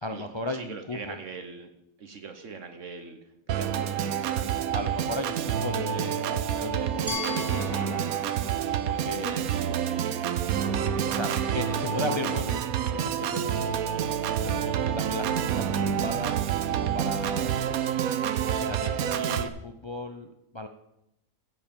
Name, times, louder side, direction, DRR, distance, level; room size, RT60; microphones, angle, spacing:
voice 1, 0.0-1.2 4.7-8.3 8.8-9.4 10.9-13.7 14.4-16.4 16.7-17.5 18.3-20.7, left 1 dB, 45° left, 7 dB, 0.3 m, -36 dB
voice 2, 0.5-1.7 2.0-3.2 3.5-4.5 11.2-11.5, right 4 dB, 60° right, 6 dB, 1.2 m, -42 dB
Organ, 3.5-19.5, right 9 dB, 75° right, 1.2 m, -28 dB
sound 1, 6.6-8.4 8.8-9.9 10.8-12.7, left 5 dB, 80° left, 1.5 m, -42 dB
Glass, 7.1-10.0, left 4 dB, 20° right, 2.4 m, -40 dB
15.0 x 7.4 x 5.3 m, 0.83 s
omnidirectional pair, 1.5 m